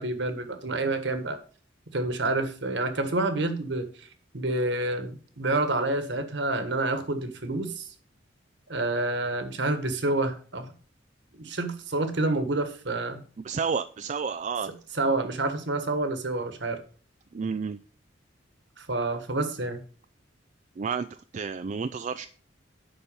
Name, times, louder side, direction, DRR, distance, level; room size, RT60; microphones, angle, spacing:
voice 1, 0.0-1.4 1.9-4.1 4.3-7.9 8.7-10.7 11.3-13.2 14.9-16.8 18.8-19.8, right 2 dB, 65° right, 8 dB, 1.4 m, -28 dB
voice 2, 13.4-14.7 17.3-17.8 20.8-22.3, right 5 dB, 40° right, 10 dB, 0.3 m, -31 dB
10.5 x 4.2 x 6.8 m, 0.43 s
head